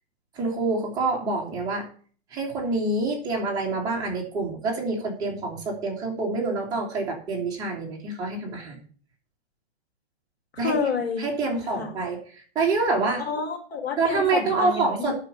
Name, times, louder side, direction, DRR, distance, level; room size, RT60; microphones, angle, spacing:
voice 1, 0.3-1.8 2.3-8.8 10.6-10.8 11.2-13.2 14.0-15.1, right 3 dB, 10° right, -3 dB, 2.0 m, -26 dB
voice 2, 10.5-11.2 11.5-11.9 13.2-15.1, left 4 dB, 70° left, 3 dB, 4.5 m, -29 dB
9.3 x 6.9 x 6.5 m, 0.42 s
hypercardioid pair, 165°, 32 cm